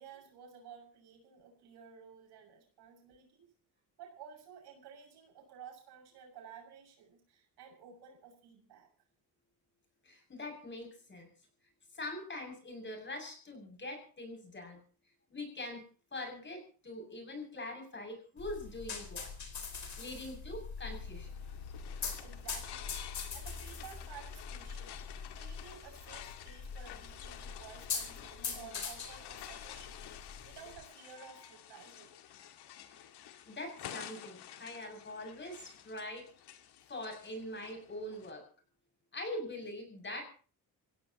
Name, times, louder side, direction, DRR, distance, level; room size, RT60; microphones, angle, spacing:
voice 1, 0.0-3.5 4.0-8.9 21.9-22.9 23.3-25.0 25.3-32.2, right 7 dB, 80° right, 2 dB, 6.6 m, -54 dB
voice 2, 10.0-11.3 11.9-14.8 15.3-15.9 16.1-19.3 19.8-21.3 32.9-33.0 33.5-36.3 36.9-38.5 39.1-40.3, left 1 dB, 30° left, 4 dB, 7.0 m, -43 dB
sound 1, 18.4-30.8, left 5 dB, 45° left, 4.8 m, -43 dB
sound 2, 20.8-38.3, left 11 dB, 80° left, 1.9 m, -51 dB
26.5 x 16.5 x 3.0 m, 0.38 s
cardioid pair, 110°, 40 cm